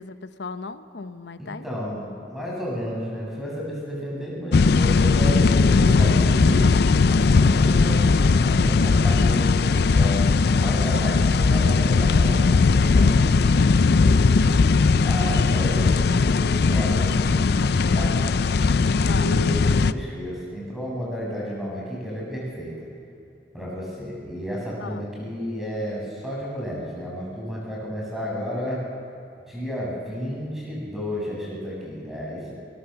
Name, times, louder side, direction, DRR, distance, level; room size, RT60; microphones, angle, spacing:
voice 1, 0.0-1.6 19.0-19.4 24.8-25.0, left 4 dB, 85° left, 11 dB, 0.9 m, -36 dB
voice 2, 1.4-6.7 7.1-10.2 10.6-14.5 15.0-18.1 19.1-22.7 23.5-28.8 29.5-32.5, equal, ahead, -5 dB, 6.8 m, -32 dB
sound 1, 4.5-19.9, left 4 dB, 65° left, 0.5 m, -19 dB
21.0 x 19.5 x 7.0 m, 2.7 s
head